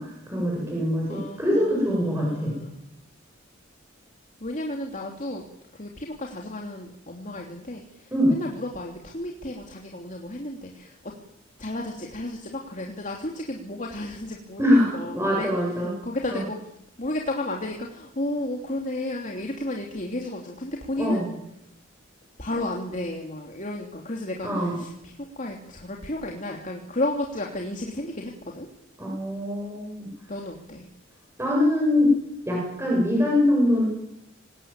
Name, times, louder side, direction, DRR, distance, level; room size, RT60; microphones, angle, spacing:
voice 1, 0.0-2.5 8.1-8.3 14.6-15.9 16.3-16.4 21.0-21.3 24.4-24.8 29.0-30.1 31.4-32.1 32.5-33.9, left 1 dB, 15° right, -3 dB, 7.8 m, -23 dB
voice 2, 1.1-2.8 4.4-5.4 5.7-11.1 11.6-15.5 16.0-16.6 17.0-21.2 22.4-28.7 30.3-30.9, left 1 dB, 40° left, 0 dB, 3.0 m, -33 dB
26.0 x 19.5 x 9.0 m, 0.82 s
head